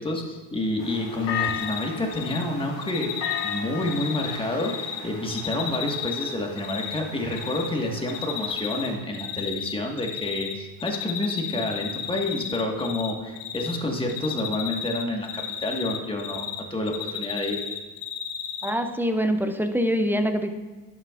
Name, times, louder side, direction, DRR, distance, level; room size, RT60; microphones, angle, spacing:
voice 1, 0.0-17.6, left 1 dB, 10° left, 1 dB, 1.5 m, -29 dB
sound 1, 0.8-8.9, left 7 dB, 65° left, 2.0 m, -36 dB
Cricket, 1.4-1.8 2.1-2.4 2.8-5.0 5.3-7.0 7.3-7.7 8.1-8.9 9.1-10.5 10.8-13.1 13.4-13.8 14.1-16.6 16.9-18.7, left 9 dB, 85° left, 1.0 m, -33 dB
voice 2, 18.6-20.5, equal, 5° right, 7 dB, 0.4 m, -24 dB
11.5 x 7.6 x 2.5 m, 1.3 s
supercardioid pair, 100°, 46 cm